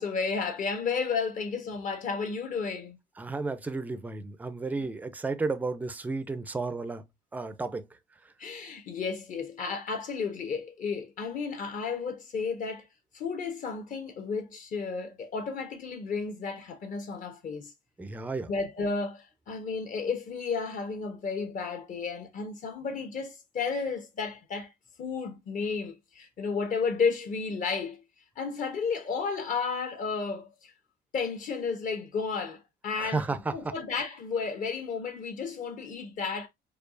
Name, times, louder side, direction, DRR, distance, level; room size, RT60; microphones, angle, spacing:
voice 1, 0.0-3.0 4.8-4.9 8.4-12.9 13.1-17.7 18.5-24.7 25.0-28.0 28.4-30.7 31.1-36.5, left 5 dB, 50° left, 1.1 m, -32 dB
voice 2, 3.2-7.0 7.3-7.8 18.0-18.5 33.0-33.7, right 3 dB, 10° right, 0.4 m, -33 dB
4.5 x 2.4 x 2.5 m
cardioid pair, 110°, 17 cm